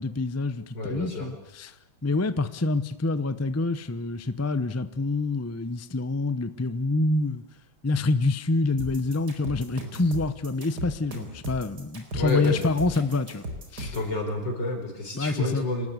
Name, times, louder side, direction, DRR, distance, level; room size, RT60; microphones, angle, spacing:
voice 1, 0.0-1.7 2.0-7.4 7.8-13.4 13.7-13.9 15.1-15.7, left 3 dB, 15° left, 13 dB, 0.5 m, -27 dB
voice 2, 0.7-1.3 12.1-12.7 13.8-15.9, left 2 dB, 75° left, 4 dB, 5.2 m, -29 dB
sound 1, 8.8-14.1, equal, 60° right, 4.9 m, -37 dB
26.0 x 20.0 x 8.1 m, 0.88 s
omnidirectional pair, 2.0 m